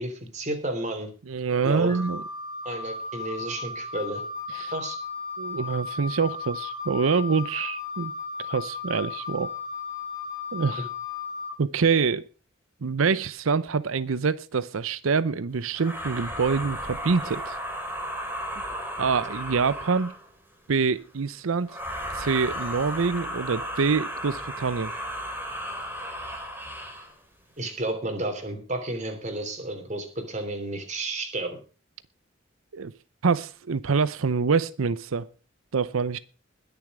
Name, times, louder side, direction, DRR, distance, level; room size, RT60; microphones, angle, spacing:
voice 1, 0.0-1.1 1.6-1.9 2.6-4.2 4.7-5.0 27.6-31.6, right 2 dB, 35° right, 3.2 m, -32 dB
voice 2, 1.3-2.2 4.5-4.7 5.4-8.1 8.5-9.5 10.5-10.9 11.6-12.2 12.8-17.5 19.0-20.1 20.7-21.7 22.1-24.9 32.7-32.9 33.2-35.3 35.7-36.2, right 5 dB, 85° right, 0.6 m, -25 dB
Wind instrument woodwind instrument, 1.9-11.5, left 4 dB, 20° left, 3.0 m, -35 dB
sound 1, 15.7-20.3 21.7-27.1, equal, 10° right, 3.1 m, -34 dB
21.0 x 7.0 x 4.8 m
head